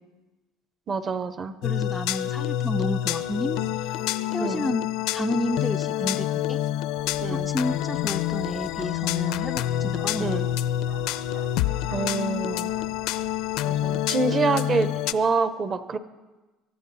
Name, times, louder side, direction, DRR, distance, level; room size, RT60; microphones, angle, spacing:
voice 1, 0.9-1.5 4.4-4.6 7.2-7.5 10.2-10.5 11.9-12.7 13.6-16.0, right 4 dB, 30° right, 12 dB, 0.8 m, -26 dB
sound 1, 1.6-15.1, left 12 dB, 75° left, 0.5 m, -27 dB
voice 2, 1.6-4.0 4.3-6.6 7.3-10.4, left 1 dB, 5° left, 5 dB, 0.4 m, -31 dB
Bark, 7.0-14.0, right 5 dB, 65° right, 1.7 m, -48 dB
24.0 x 12.0 x 4.1 m, 1.2 s
cardioid pair, 145°, 0 cm